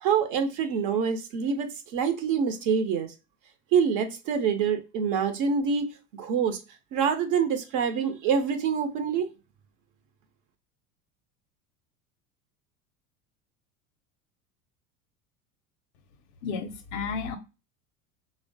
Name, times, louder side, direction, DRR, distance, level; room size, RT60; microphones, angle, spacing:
voice 1, 0.0-3.1 3.7-5.9 6.2-6.6 6.9-9.3, right 6 dB, 45° right, 0.6 m, -26 dB
voice 2, 16.4-17.4, left 5 dB, 45° left, 0.5 m, -32 dB
3.1 x 2.1 x 2.5 m
hypercardioid pair, 80°, 43 cm